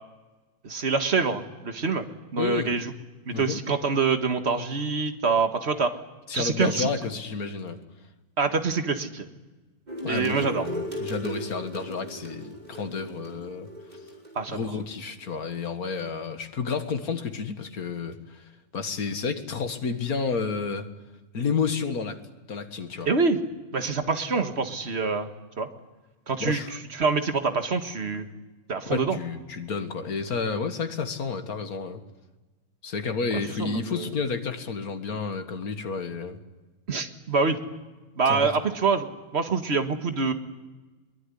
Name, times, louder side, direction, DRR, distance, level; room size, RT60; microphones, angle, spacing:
voice 1, 0.6-2.0 2.3-2.9 3.3-5.9 6.3-6.9 8.4-9.3 10.1-10.7 14.4-14.6 23.1-23.4 23.7-25.3 25.6-25.7 26.3-26.6 27.0-28.3 28.7-29.2 33.3-34.1 36.9-37.6 38.2-40.3, right 4 dB, 45° right, 7 dB, 1.9 m, -25 dB
voice 2, 2.4-2.7 3.3-3.6 6.3-7.8 10.0-13.7 14.5-18.4 18.7-20.9 21.3-22.2 22.5-23.1 26.4-26.8 28.9-32.0 32.8-36.4 38.3-38.5, left 5 dB, 85° left, 8 dB, 2.2 m, -30 dB
sound 1, 9.9-14.8, equal, 30° right, 5.8 m, -37 dB
22.5 x 22.0 x 9.9 m, 1.2 s
omnidirectional pair, 1.5 m